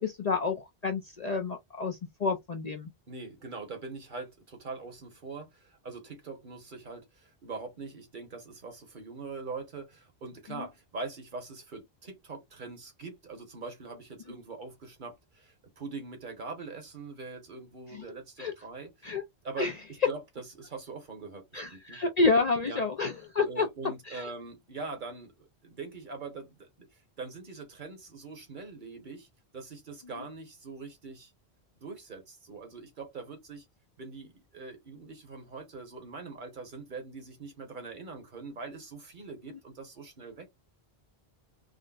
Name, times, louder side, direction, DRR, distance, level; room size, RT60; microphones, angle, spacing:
voice 1, 0.0-2.9 10.5-10.7 17.9-18.0 18.4-18.5 19.0-19.2 19.6-19.7 21.5-23.7 24.1-24.3, left 4 dB, 50° left, 0.5 m, -29 dB
voice 2, 3.1-19.1 19.4-22.0 22.6-22.8 23.5-31.3 31.8-33.7 34.0-40.5, right 4 dB, 50° right, 1.1 m, -43 dB
3.8 x 2.1 x 2.3 m
omnidirectional pair, 1.1 m